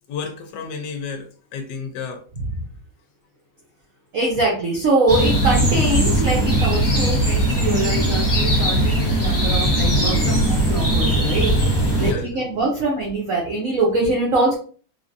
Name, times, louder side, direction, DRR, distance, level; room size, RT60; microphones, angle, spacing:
voice 1, 0.1-2.2 11.9-12.4, left 5 dB, 70° left, 5 dB, 1.1 m, -32 dB
voice 2, 4.1-14.5, right 2 dB, 60° right, -3 dB, 0.9 m, -23 dB
sound 1, 5.1-12.1, right 1 dB, 10° left, 0.9 m, -19 dB
3.7 x 2.6 x 2.5 m, 0.42 s
omnidirectional pair, 2.1 m